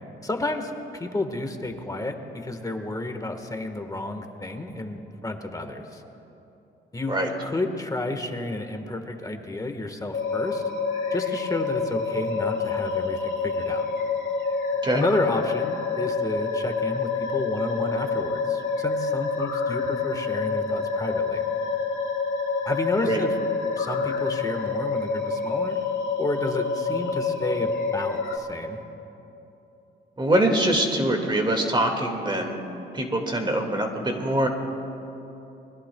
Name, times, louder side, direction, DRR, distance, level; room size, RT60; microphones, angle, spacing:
voice 1, 0.2-6.0 6.9-10.6 11.1-13.8 14.9-21.4 22.6-23.4 23.8-25.8 26.2-28.8, left 2 dB, 15° left, 5 dB, 1.5 m, -31 dB
sound 1, 10.1-28.4, left 4 dB, 60° left, 1.8 m, -27 dB
voice 2, 30.2-32.6 32.9-34.5, right 1 dB, 25° right, 3 dB, 2.0 m, -23 dB
29.5 x 21.0 x 2.3 m, 3.0 s
cardioid pair, 90°, 20 cm